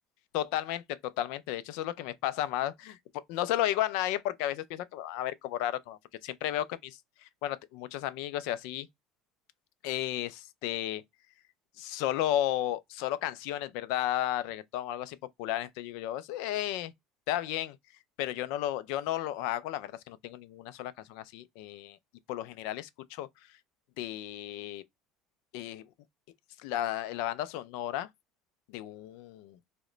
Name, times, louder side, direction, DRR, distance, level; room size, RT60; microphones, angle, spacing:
voice 1, 0.3-3.0 3.3-7.0 7.4-8.9 9.8-11.0 11.8-16.9 17.3-17.8 18.2-22.0 22.3-23.3 24.0-24.8 25.5-25.8 26.6-28.1 28.7-29.6, left 13 dB, 75° left, 0.4 m, -33 dB
2.9 x 2.1 x 3.7 m
cardioid pair, 125°, 0 cm